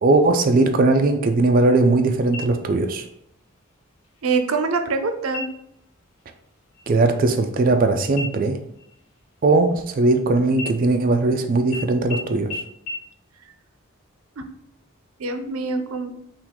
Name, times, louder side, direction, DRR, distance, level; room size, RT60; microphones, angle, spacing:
voice 1, 0.0-3.1 6.9-8.6 9.4-12.6, right 2 dB, 40° right, 6 dB, 0.3 m, -19 dB
sound 1, 2.3-3.0 3.4-3.5 4.0-4.6 5.3-5.8 6.2-6.4 6.7-7.8 8.2-10.2 10.5-11.3 11.7-11.8 12.1-12.2 12.5-12.6 12.9-13.0, left 1 dB, 80° left, 1.0 m, -36 dB
voice 2, 4.2-5.4 14.4-14.5 15.2-16.1, right 4 dB, 85° right, 7 dB, 0.6 m, -24 dB
5.8 x 2.5 x 3.6 m, 0.73 s
head